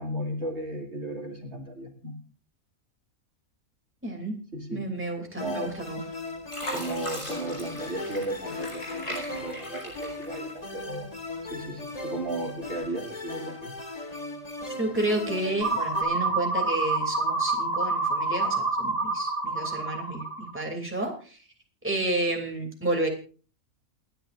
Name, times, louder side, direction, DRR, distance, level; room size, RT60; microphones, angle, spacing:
voice 1, 0.0-2.2 4.5-4.8 5.3-5.7 6.7-11.1 11.4-13.7, right 1 dB, 50° right, 1 dB, 2.9 m, -35 dB
voice 2, 4.0-4.4 4.7-6.0 14.7-21.4 21.8-23.1, right 1 dB, 10° right, 1 dB, 2.9 m, -31 dB
sound 1, 5.4-16.0, left 2 dB, 30° left, 1.8 m, -38 dB
Fill (with liquid), 5.7-6.1 6.5-10.9 11.3-12.1 12.7-12.8, equal, 50° left, 5.6 m, -39 dB
sound 2, 15.6-20.6, right 3 dB, 70° right, 2.8 m, -27 dB
28.5 x 10.0 x 2.6 m, 0.37 s
omnidirectional pair, 1.5 m